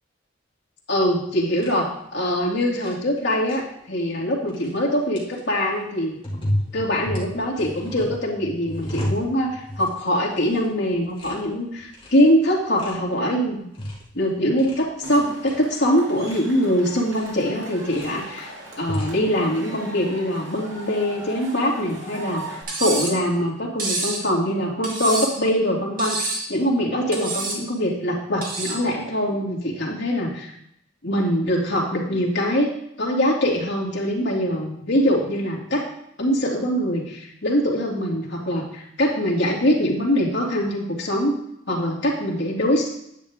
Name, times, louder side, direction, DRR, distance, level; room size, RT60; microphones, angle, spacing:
voice 1, 0.9-6.2 6.7-13.6 14.1-18.5 18.8-22.4 22.8-30.5 31.0-32.7 33.0-35.9 36.2-41.4 41.7-42.9, equal, 65° left, -2 dB, 2.5 m, -23 dB
sound 1, 1.6-1.7 2.8-2.9 3.2-3.6 4.5-4.8 5.2-5.4 6.2-10.0 10.3-10.6 10.9-11.4 11.7-12.2 12.8-12.9 13.5-14.1 14.4-14.8 15.2-15.5 16.0-16.4 17.1-17.3 17.7-18.1 18.7-19.2, equal, 30° left, 2.2 m, -31 dB
Cheering / Crowd, 15.0-22.6, right 1 dB, 70° right, 2.5 m, -39 dB
Cutlery silverware, 22.7-23.2 23.8-24.2 24.8-25.4 26.0-26.5 27.1-27.6 28.4-28.8, right 3 dB, 50° right, 2.1 m, -27 dB
10.0 x 8.6 x 3.6 m, 0.75 s
head